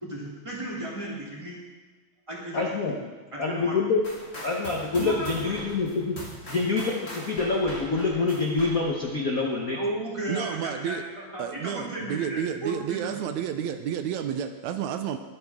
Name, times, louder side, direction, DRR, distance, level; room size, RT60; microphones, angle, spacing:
voice 1, 0.0-1.6 2.3-3.0 3.3-3.9 5.0-5.6 9.7-13.2, right 1 dB, 10° right, -5 dB, 2.9 m, -34 dB
voice 2, 2.5-3.0 3.4-4.0 4.4-6.2 6.5-9.8, left 3 dB, 75° left, 0 dB, 0.8 m, -26 dB
sound 1, 4.0-9.2, left 1 dB, 25° left, 2.0 m, -41 dB
voice 3, 10.3-11.0 11.4-15.2, right 9 dB, 80° right, 8 dB, 1.9 m, -31 dB
21.0 x 8.2 x 3.6 m, 1.4 s
omnidirectional pair, 3.4 m